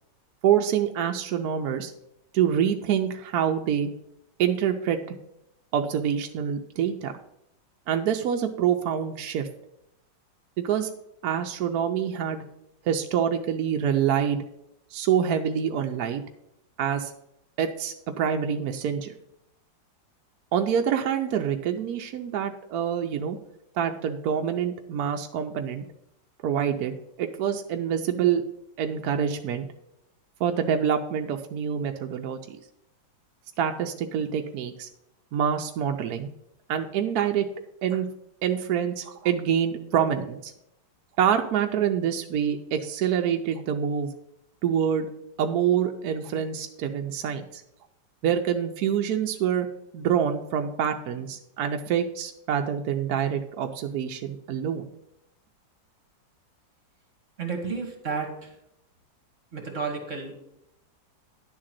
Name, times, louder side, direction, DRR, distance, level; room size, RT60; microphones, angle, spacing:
voice 1, 0.4-1.9 2.3-3.9 4.4-5.0 5.7-7.1 7.9-9.5 10.6-10.9 11.2-12.4 12.8-14.5 14.9-16.2 16.8-17.1 17.6-19.1 20.5-23.4 23.7-25.8 26.4-28.4 28.8-29.7 30.4-32.6 33.6-34.9 35.3-36.3 36.7-37.5 37.8-38.1 38.4-40.5 41.2-44.1 44.6-45.1 45.4-47.6 48.2-49.7 49.9-54.9, right 8 dB, 70° right, 4 dB, 1.0 m, -26 dB
voice 2, 57.4-58.5 59.5-60.3, right 5 dB, 45° right, 3 dB, 1.6 m, -31 dB
10.5 x 3.8 x 7.4 m, 0.80 s
omnidirectional pair, 2.0 m